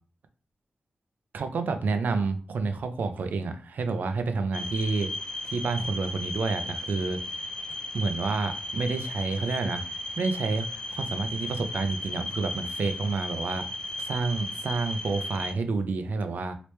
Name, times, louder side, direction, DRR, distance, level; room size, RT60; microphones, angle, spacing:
voice 1, 1.3-5.1 5.4-7.4 7.9-13.7 14.0-16.5, right 4 dB, 85° right, 8 dB, 0.5 m, -29 dB
sound 1, 4.5-15.5, left 1 dB, 30° left, 0.4 m, -35 dB
3.0 x 2.9 x 3.2 m, 0.39 s
wide cardioid pair, 135°, 3 cm